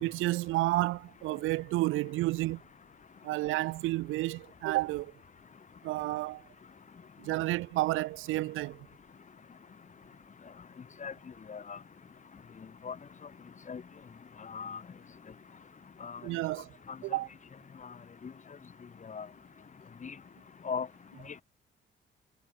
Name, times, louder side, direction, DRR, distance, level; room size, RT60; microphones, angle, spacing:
voice 1, 0.0-2.6 3.2-5.1 5.8-6.4 7.2-8.9 16.2-16.8 17.0-17.3, right 18 dB, 85° right, 0.5 m, -31 dB
voice 2, 14.5-14.8 16.0-16.2 18.2-18.3 19.1-19.3 20.0-20.1 20.6-20.9, left 6 dB, 40° left, 1.9 m, -37 dB
cardioid pair, 90°, 20 cm